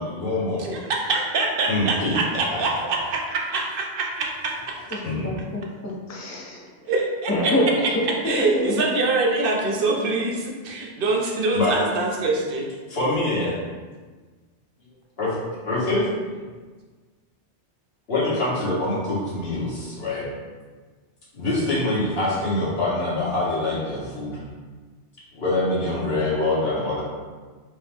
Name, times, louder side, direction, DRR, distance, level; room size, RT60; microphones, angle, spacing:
voice 1, 0.0-0.6 1.7-2.2 2.5-2.6 5.0-5.3 11.5-11.7 12.9-13.5 15.2-15.4 15.6-16.1 18.1-20.2 21.3-24.4 25.3-27.0, left 2 dB, 60° left, -8 dB, 1.5 m, -24 dB
voice 2, 0.6-5.0 6.9-7.5 7.8-12.7, right 3 dB, 60° right, 0 dB, 0.7 m, -25 dB
voice 3, 4.9-6.9 7.3-8.8 10.0-10.1, left 1 dB, 20° left, -4 dB, 0.5 m, -26 dB
4.6 x 2.0 x 3.4 m, 1.4 s
omnidirectional pair, 1.2 m